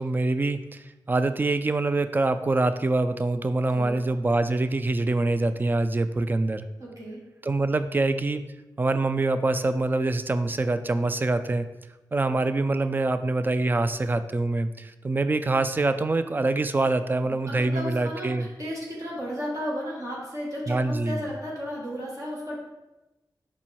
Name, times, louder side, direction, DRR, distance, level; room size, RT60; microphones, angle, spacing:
voice 1, 0.0-6.6 7.4-8.4 8.8-11.7 12.1-18.5 20.7-21.3, right 2 dB, 25° right, 11 dB, 0.3 m, -25 dB
voice 2, 6.8-7.2 17.3-22.6, equal, 45° right, -4 dB, 1.7 m, -34 dB
5.4 x 4.4 x 4.4 m, 1.0 s
wide cardioid pair, 125°, 8 cm